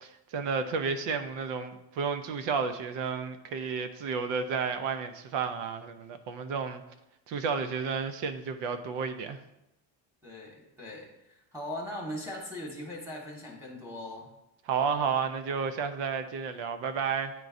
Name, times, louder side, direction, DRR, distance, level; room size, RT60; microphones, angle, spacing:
voice 1, 0.0-6.8 7.3-9.4 14.7-17.3, right 5 dB, 65° right, 9 dB, 0.7 m, -32 dB
voice 2, 10.2-14.3, left 1 dB, 5° right, -4 dB, 1.5 m, -40 dB
9.6 x 4.6 x 2.6 m, 0.89 s
cardioid pair, 145°, 46 cm